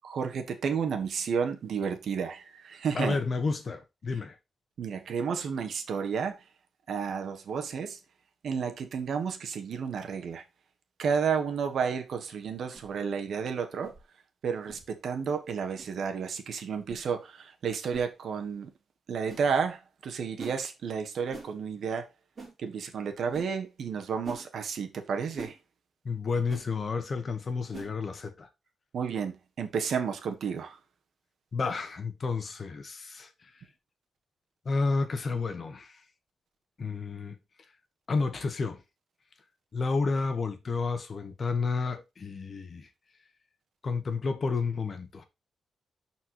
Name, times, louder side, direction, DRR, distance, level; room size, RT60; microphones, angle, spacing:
voice 1, 0.0-3.2 4.8-6.4 6.9-8.0 8.4-10.4 11.0-13.9 14.4-18.7 19.1-22.1 22.6-25.6 28.9-30.8, right 6 dB, 65° right, 1.4 m, -31 dB
voice 2, 2.9-4.4 26.0-28.5 31.5-33.6 34.6-36.0 36.8-37.4 38.1-38.8 39.7-42.9 43.8-45.2, left 4 dB, 35° left, 1.2 m, -31 dB
sound 1, 12.7-12.9 13.8-14.0 14.7-14.8 15.8-15.9 16.9-17.0 17.9-18.1 19.3-19.5 20.4-20.6 21.3-21.5 22.4-22.5 23.3-23.5 24.2-24.4 25.4-25.6 26.5-26.7 27.7-27.9, right 3 dB, 30° right, 3.7 m, -43 dB
12.0 x 4.5 x 3.1 m
wide cardioid pair, 170°, 0 cm